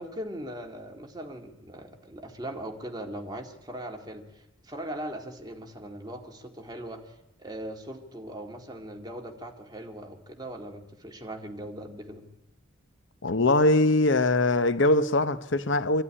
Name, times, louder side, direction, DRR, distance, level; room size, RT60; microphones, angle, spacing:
voice 1, 0.0-12.2, right 1 dB, 20° right, 2.0 m, -40 dB
voice 2, 13.2-16.0, left 2 dB, 60° left, 0.9 m, -22 dB
23.0 x 12.5 x 9.9 m
head